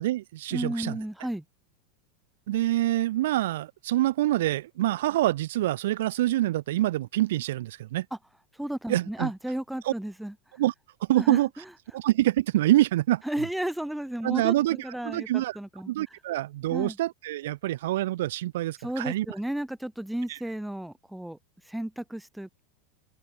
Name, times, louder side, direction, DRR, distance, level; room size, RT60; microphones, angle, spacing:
voice 1, 0.0-1.0 2.5-8.1 8.9-9.3 9.8-9.9 10.6-10.7 11.0-11.5 11.9-13.2 14.2-15.6 15.9-19.3 20.3-20.4, right 15 dB, 70° right, 0.6 m, -26 dB
voice 2, 0.5-1.4 8.1-8.2 8.6-10.3 11.2-11.4 13.2-15.9 16.7-17.0 18.8-21.4 21.7-22.6, right 1 dB, 5° right, 0.4 m, -33 dB
open air
hypercardioid pair, 95°, 0 cm